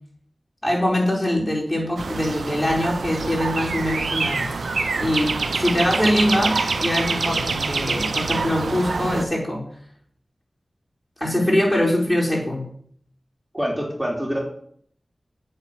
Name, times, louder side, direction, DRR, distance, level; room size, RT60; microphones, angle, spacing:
voice 1, 0.6-4.5 5.0-9.7 11.2-12.7, left 1 dB, 15° left, -3 dB, 4.3 m, -23 dB
sound 1, 2.0-9.2, right 4 dB, 85° right, 0.6 m, -26 dB
voice 2, 13.5-14.4, equal, 10° right, 0 dB, 3.2 m, -26 dB
8.7 x 4.2 x 6.4 m, 0.62 s
cardioid pair, 40°, 0 cm